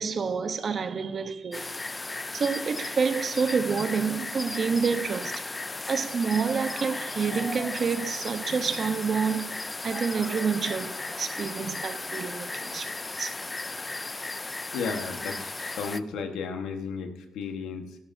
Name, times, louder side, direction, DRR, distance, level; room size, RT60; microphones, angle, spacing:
voice 1, 0.0-1.9 2.3-5.4 5.8-12.9 13.2-13.4, right 5 dB, 45° right, 0.9 m, -28 dB
sound 1, 1.5-16.0, left 3 dB, 20° left, 0.5 m, -35 dB
voice 2, 14.7-17.9, left 5 dB, 85° left, 1.3 m, -34 dB
17.5 x 12.5 x 2.7 m
cardioid pair, 90°, 0 cm